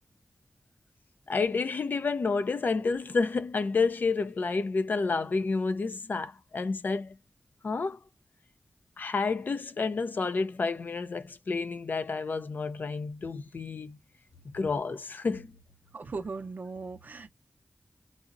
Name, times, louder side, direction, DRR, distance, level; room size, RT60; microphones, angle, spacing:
voice 1, 1.3-7.2 7.6-8.0 9.0-14.0 14.5-15.5, left 4 dB, 75° left, 0.5 m, -30 dB
voice 2, 15.9-17.3, right 4 dB, 65° right, 0.4 m, -38 dB
3.6 x 2.0 x 2.5 m
wide cardioid pair, 55°, 3 cm